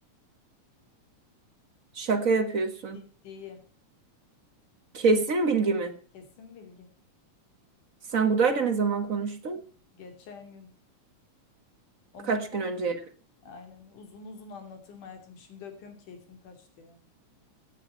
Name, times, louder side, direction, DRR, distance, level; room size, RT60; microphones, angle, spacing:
voice 1, 1.9-3.0 4.9-5.9 8.1-9.6 12.3-13.0, right 4 dB, 40° right, 7 dB, 1.2 m, -25 dB
voice 2, 3.2-3.7 6.1-6.9 9.9-10.7 12.1-12.7 13.4-17.0, left 5 dB, 70° left, 6 dB, 4.4 m, -46 dB
16.5 x 9.7 x 5.6 m, 0.41 s
omnidirectional pair, 3.7 m